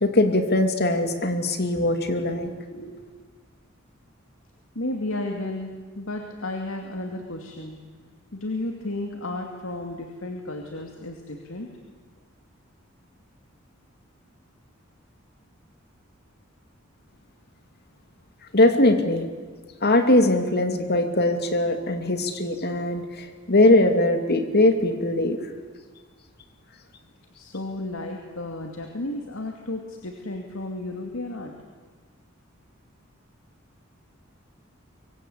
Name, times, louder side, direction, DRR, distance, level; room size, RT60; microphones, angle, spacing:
voice 1, 0.0-2.5 18.5-19.3 19.8-25.4, left 1 dB, 55° left, 7 dB, 2.8 m, -21 dB
voice 2, 2.7-3.0 4.7-7.8 8.3-11.7 27.4-31.5, left 2 dB, 80° left, 3 dB, 2.5 m, -33 dB
25.0 x 24.0 x 8.6 m, 1.4 s
head